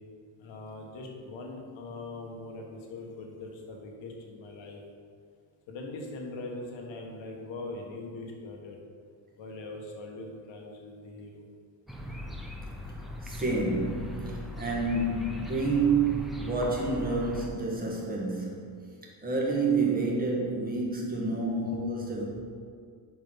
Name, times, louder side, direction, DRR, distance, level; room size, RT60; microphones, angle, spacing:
voice 1, 0.4-4.8 5.7-8.8 9.4-11.5, left 2 dB, 75° left, 0 dB, 1.5 m, -41 dB
sound 1, 11.9-17.5, left 1 dB, ahead, 0.6 m, -39 dB
voice 2, 13.2-18.9 19.2-22.2, right 3 dB, 20° right, -3 dB, 1.6 m, -29 dB
7.3 x 4.8 x 5.7 m, 2.2 s
cardioid pair, 130°, 46 cm